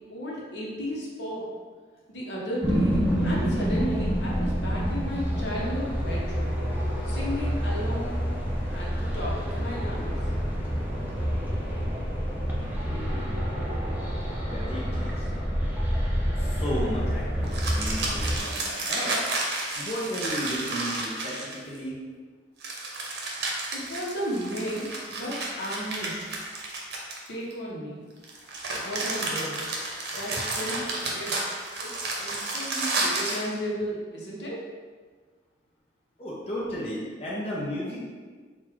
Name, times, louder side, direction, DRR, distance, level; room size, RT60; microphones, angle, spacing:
voice 1, 0.1-1.4 2.1-6.5 7.0-8.3 8.7-10.1 23.7-26.3 27.3-28.0 28.8-29.6 30.1-31.3 31.8-34.6, equal, 65° left, -4 dB, 0.9 m, -34 dB
sound 1, 2.6-18.4, equal, 10° right, 0.6 m, -28 dB
voice 2, 12.8-13.7 14.5-15.3 16.4-19.2 19.8-21.9 36.2-38.1, equal, 35° left, -6 dB, 0.7 m, -34 dB
sound 2, 17.5-21.8 22.6-27.5 28.2-33.5, right 2 dB, 65° right, 0.8 m, -31 dB
3.8 x 2.4 x 4.4 m, 1.5 s
head